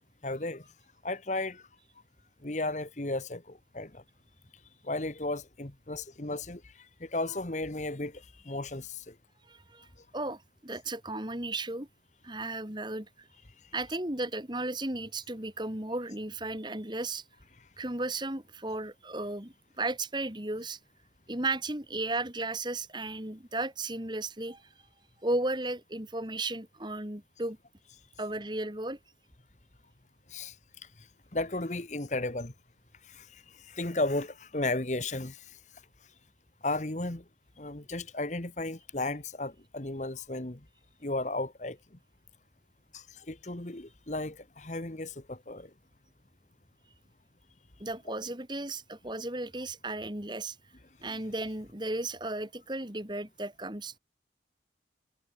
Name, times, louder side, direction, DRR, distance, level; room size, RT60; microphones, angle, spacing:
voice 1, 0.2-0.6 1.0-1.6 2.4-4.0 4.8-9.1 30.3-30.5 31.3-32.5 33.1-35.6 36.6-37.2 37.6-40.6 41.0-41.8 42.9-45.7, left 2 dB, 40° left, 1.5 m, -34 dB
voice 2, 9.5-9.9 10.1-11.9 12.2-13.3 13.7-17.2 17.8-20.8 21.3-24.6 25.2-27.6 28.2-29.0 47.8-50.6 51.0-54.0, right 2 dB, 25° right, 2.7 m, -35 dB
head